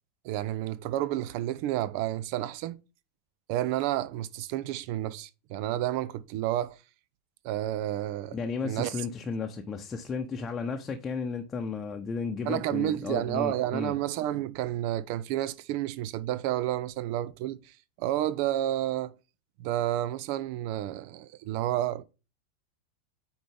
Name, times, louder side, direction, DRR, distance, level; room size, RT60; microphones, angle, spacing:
voice 1, 0.2-2.8 3.5-6.8 7.4-8.4 8.6-8.9 12.4-17.6 18.0-19.1 19.6-22.0, right 13 dB, 45° right, 0.6 m, -30 dB
voice 2, 8.3-13.9, left 5 dB, 20° left, 0.9 m, -34 dB
9.2 x 4.4 x 3.4 m
figure-of-eight pair, 90°, 0 cm